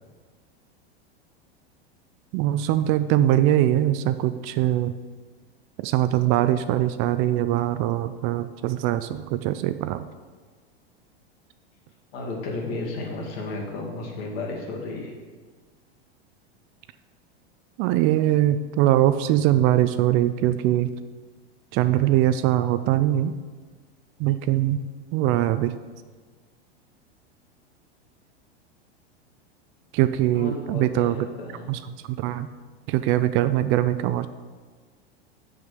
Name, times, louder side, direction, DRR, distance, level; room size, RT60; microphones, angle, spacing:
voice 1, 2.3-4.9 5.8-10.1 17.8-20.9 21.7-23.3 24.2-24.8 25.1-25.7 29.9-31.3 31.7-31.8 32.1-32.5 32.9-34.3, right 13 dB, 40° right, 12 dB, 0.4 m, -22 dB
voice 2, 12.1-15.1 30.3-31.7, left 2 dB, 65° left, -1 dB, 2.3 m, -33 dB
7.2 x 6.8 x 5.1 m, 1.5 s
hypercardioid pair, 105°, 31 cm